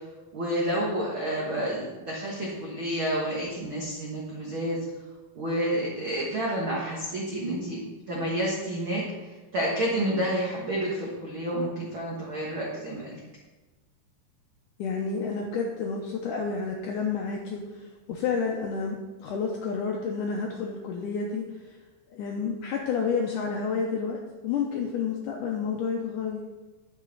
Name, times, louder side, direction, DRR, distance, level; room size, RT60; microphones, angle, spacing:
voice 1, 0.3-4.8 5.3-13.2, right 1 dB, 90° right, -4 dB, 1.1 m, -30 dB
voice 2, 14.8-21.8 22.1-26.4, left 5 dB, 85° left, 0 dB, 1.8 m, -30 dB
10.5 x 6.7 x 4.0 m, 1.2 s
omnidirectional pair, 4.5 m